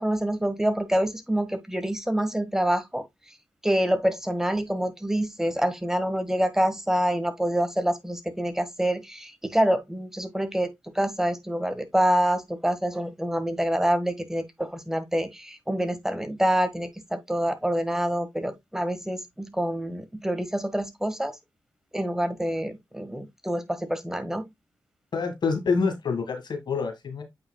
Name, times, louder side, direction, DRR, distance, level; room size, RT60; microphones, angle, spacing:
voice 1, 0.0-3.0 3.6-10.7 10.9-21.4 21.9-24.5, right 1 dB, 5° right, 1.6 m, -26 dB
voice 2, 25.1-27.2, left 4 dB, 65° left, 1.7 m, -27 dB
8.6 x 5.1 x 2.2 m
cardioid pair, 70°, 8 cm